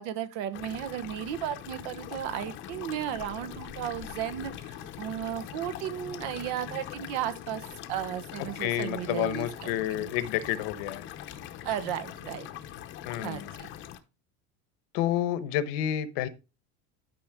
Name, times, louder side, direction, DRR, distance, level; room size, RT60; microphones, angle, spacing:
voice 1, 0.0-10.1 11.6-12.5 13.2-13.7, right 11 dB, 65° right, 1.1 m, -35 dB
sound 1, 0.5-14.0, left 11 dB, 40° left, 0.8 m, -42 dB
voice 2, 8.6-11.0 13.0-13.5 14.9-16.3, left 12 dB, 75° left, 1.1 m, -29 dB
12.0 x 5.5 x 3.6 m
cardioid pair, 175°, 31 cm